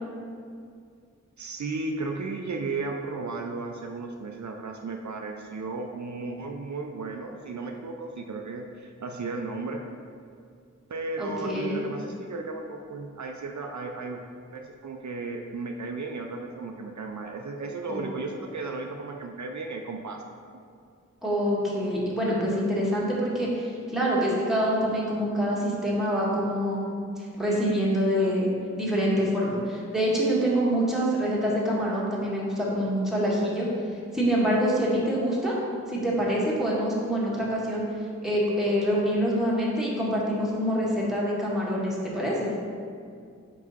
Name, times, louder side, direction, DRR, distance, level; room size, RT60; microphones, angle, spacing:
voice 1, 1.4-9.8 10.9-14.2 14.5-20.2, right 3 dB, 70° right, 2 dB, 0.5 m, -34 dB
voice 2, 11.2-11.8 17.9-18.0 21.2-27.0 27.4-28.5 28.8-33.7 34.1-35.6 35.9-37.9 38.2-42.5, equal, ahead, -6 dB, 1.5 m, -26 dB
5.0 x 4.7 x 4.0 m, 2.2 s
wide cardioid pair, 45°, 30 cm